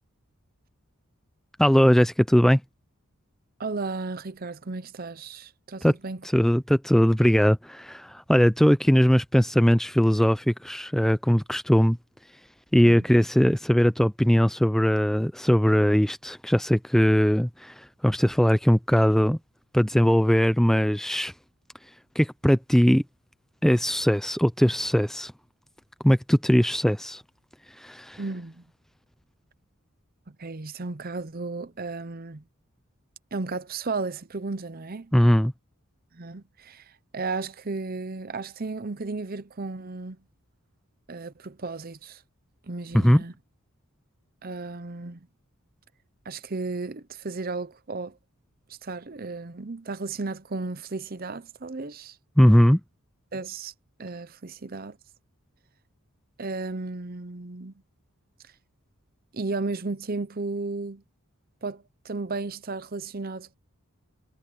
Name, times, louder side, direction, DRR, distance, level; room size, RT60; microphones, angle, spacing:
voice 1, 1.6-2.6 5.8-5.9 6.3-12.0 12.7-19.4 19.7-21.3 22.2-23.0 23.6-25.3 26.0-27.2 27.8-28.2 35.1-35.5 42.9-43.2 52.4-52.8, equal, ahead, 0.4 m, -20 dB
voice 2, 3.6-6.2 12.8-13.0 28.2-28.6 30.4-32.4 33.3-35.1 36.1-36.8 37.1-40.2 41.1-42.2 42.7-43.3 44.4-45.3 46.3-48.2 48.8-52.1 53.3-53.7 54.0-55.0 56.4-57.7 59.3-61.0 61.6-63.6, right 3 dB, 40° right, 0.7 m, -34 dB
head